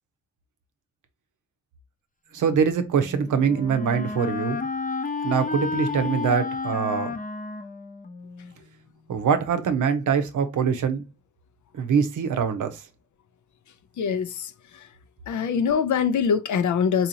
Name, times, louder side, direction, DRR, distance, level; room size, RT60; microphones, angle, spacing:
voice 1, 2.3-4.6 5.2-7.1 9.1-11.0 11.7-12.8, right 6 dB, 85° right, 0.7 m, -23 dB
Wind instrument woodwind instrument, 2.8-8.6, left 4 dB, 30° left, 0.6 m, -31 dB
voice 2, 14.0-14.5 15.3-17.1, left 7 dB, 75° left, 0.5 m, -23 dB
4.1 x 2.6 x 2.7 m
cardioid pair, 60°, 30 cm